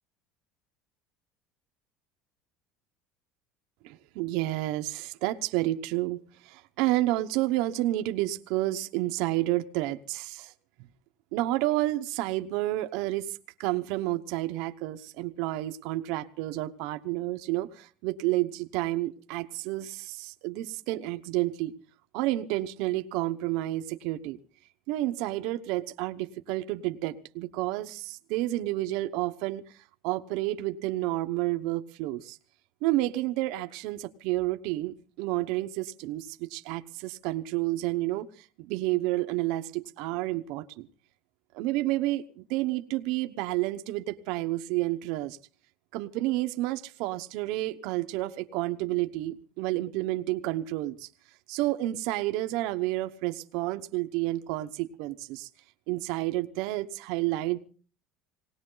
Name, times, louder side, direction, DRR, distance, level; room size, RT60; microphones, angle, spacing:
voice 1, 3.8-10.5 11.3-21.7 22.1-24.4 24.9-29.6 30.0-32.4 32.8-40.9 41.5-45.4 45.9-51.1 51.5-55.5 55.9-57.6, right 17 dB, 65° right, 8 dB, 1.0 m, -30 dB
20.0 x 18.5 x 3.9 m, 0.40 s
cardioid pair, 165°, 0 cm